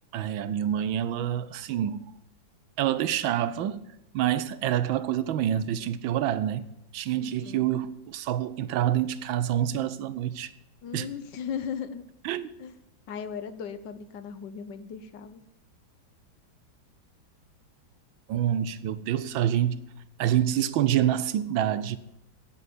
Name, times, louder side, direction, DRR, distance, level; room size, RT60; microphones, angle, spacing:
voice 1, 0.1-2.0 2.8-3.8 4.1-6.7 6.9-10.5 10.9-11.1 12.2-12.5 18.3-19.8 20.2-22.0, right 11 dB, 85° right, 1.5 m, -27 dB
voice 2, 7.2-7.6 10.8-12.0 12.6-12.7 13.1-15.4, left 7 dB, 65° left, 1.5 m, -37 dB
9.6 x 9.0 x 9.9 m
omnidirectional pair, 2.1 m